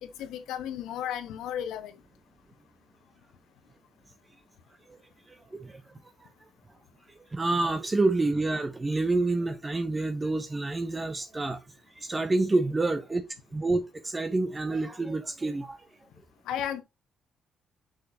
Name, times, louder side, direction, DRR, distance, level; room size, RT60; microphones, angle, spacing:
voice 1, 0.0-1.9 16.5-16.8, left 10 dB, 90° left, 1.1 m, -34 dB
voice 2, 5.3-5.8 6.2-6.3 7.3-11.6 12.0-13.2 13.5-15.8, right 2 dB, 20° right, 0.8 m, -28 dB
6.4 x 6.1 x 2.7 m
cardioid pair, 90°, 0 cm